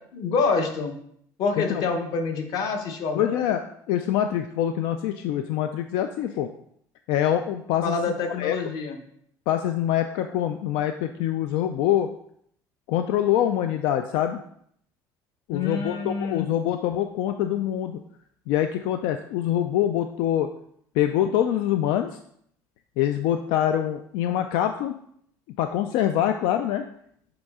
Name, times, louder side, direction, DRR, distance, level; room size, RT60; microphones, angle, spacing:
voice 1, 0.1-0.9 1.4-3.4 7.8-9.0 15.5-16.5, left 4 dB, 50° left, 5 dB, 1.0 m, -27 dB
voice 2, 3.1-6.5 7.1-7.9 8.4-8.6 9.5-12.1 12.9-14.4 15.5-18.0 18.5-20.5 20.9-22.1 23.0-24.9 25.6-26.8, left 11 dB, 85° left, 7 dB, 0.4 m, -25 dB
7.9 x 4.1 x 3.6 m, 0.67 s
cardioid pair, 180°, 8 cm